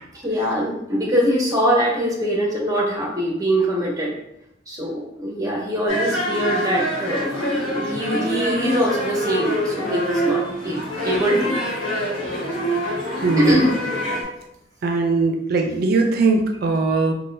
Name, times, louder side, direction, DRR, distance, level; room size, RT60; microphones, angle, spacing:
voice 1, 0.1-4.1 4.7-11.6 13.4-13.7, equal, 20° right, -2 dB, 0.8 m, -22 dB
sound 1, 5.9-14.2, equal, 90° left, 1.2 m, -26 dB
voice 2, 13.2-13.6 14.8-17.1, right 3 dB, 55° right, 3 dB, 0.4 m, -20 dB
3.8 x 2.2 x 2.6 m, 0.82 s
head